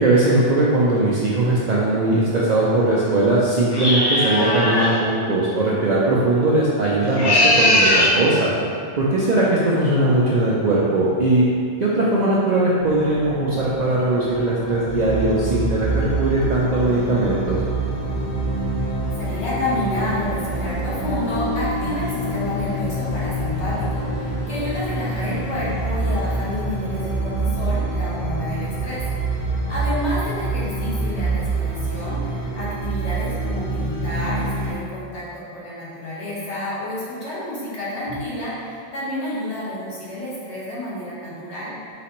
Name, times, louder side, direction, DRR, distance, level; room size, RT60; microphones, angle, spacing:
voice 1, 0.0-8.5 9.0-11.4 11.8-17.6, right 2 dB, 55° right, -7 dB, 0.5 m, -19 dB
sound 1, 3.7-5.0 7.0-8.2, left 1 dB, 30° left, 0.4 m, -18 dB
sound 2, 12.8-32.6, equal, 85° right, 1.1 m, -37 dB
sound 3, 14.9-34.7, right 2 dB, 55° left, 1.5 m, -26 dB
voice 2, 19.2-41.8, left 1 dB, 70° left, -8 dB, 1.4 m, -30 dB
4.0 x 3.3 x 2.9 m, 2.3 s
omnidirectional pair, 1.2 m